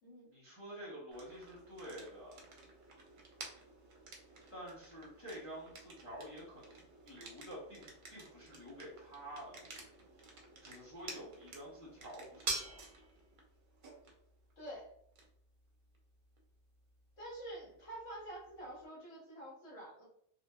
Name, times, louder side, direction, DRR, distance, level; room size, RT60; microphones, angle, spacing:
voice 1, 0.3-2.4 4.5-6.8 7.0-9.6 10.6-12.8, equal, 15° left, -7 dB, 0.8 m, -49 dB
sound 1, 1.1-18.8, right 3 dB, 55° right, 0.6 m, -50 dB
voice 2, 14.6-14.9 17.2-20.0, right 1 dB, 75° left, -7 dB, 1.3 m, -48 dB
2.7 x 2.0 x 2.2 m, 0.69 s
omnidirectional pair, 1.2 m